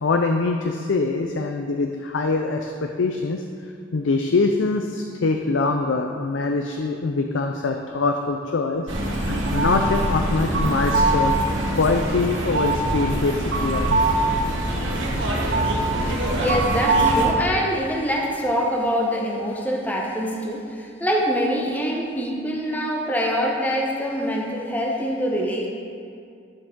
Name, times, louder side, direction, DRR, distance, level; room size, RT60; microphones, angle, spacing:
voice 1, 0.0-3.4 3.9-8.9 9.2-11.4 11.8-14.2, left 3 dB, 80° left, 4 dB, 0.5 m, -23 dB
sound 1, 8.9-17.3, right 2 dB, 80° right, 1.6 m, -22 dB
voice 2, 16.4-25.7, equal, 10° left, -2 dB, 0.8 m, -24 dB
12.0 x 7.1 x 3.7 m, 2.4 s
head